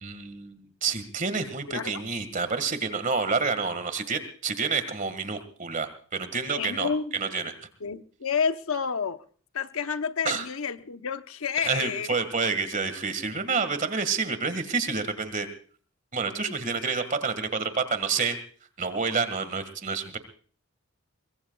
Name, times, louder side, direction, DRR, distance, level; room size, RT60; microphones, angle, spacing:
voice 1, 0.0-7.5 10.3-10.4 11.6-15.5 16.1-18.4 18.8-20.2, right 5 dB, 35° right, 1.8 m, -29 dB
voice 2, 1.7-2.0 6.6-7.3 7.8-9.2 9.5-12.2 16.4-16.5, left 6 dB, 75° left, 0.9 m, -30 dB
23.5 x 21.5 x 2.3 m
head